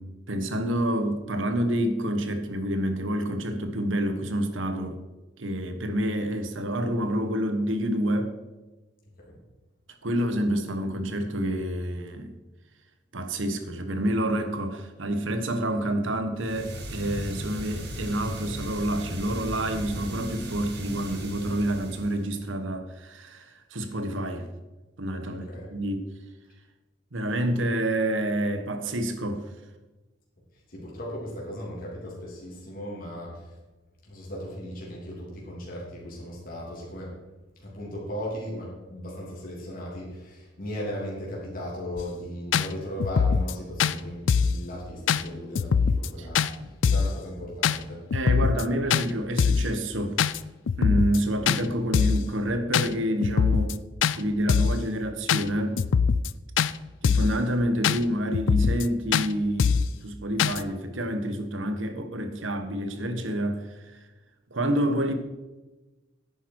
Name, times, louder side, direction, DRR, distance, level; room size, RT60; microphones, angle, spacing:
voice 1, 0.0-5.0 5.4-8.3 10.0-12.3 13.1-24.5 25.0-26.0 27.1-29.5 46.2-46.3 48.1-50.2 50.8-53.8 54.1-55.8 57.0-64.0 64.5-65.1, right 1 dB, 85° right, 8 dB, 1.3 m, -28 dB
sound 1, 16.4-22.3, equal, 60° right, 2.0 m, -37 dB
voice 2, 25.3-25.7 30.7-33.6 34.0-37.2 37.6-48.0, equal, 50° left, -4 dB, 3.2 m, -37 dB
sound 2, 42.0-42.1 42.5-42.7 43.0-43.5 43.8-43.9 44.3-44.6 45.1-45.2 45.6-46.1 46.3-46.5 46.8-47.1 47.6-47.8 48.1-48.6 48.9-49.1 49.4-49.7 50.2-50.4 50.7-51.2 51.5-51.6 51.9-52.2 52.7-52.9 53.2-53.7 54.0-54.2 54.5-54.8 55.3-55.4 55.8-56.3 56.6-56.7 57.0-57.4 57.8-58.0 58.3-58.9 59.1-59.3 59.6-59.9 60.4-60.6, left 6 dB, 70° left, 0.4 m, -22 dB
10.5 x 9.1 x 4.7 m, 1.1 s
head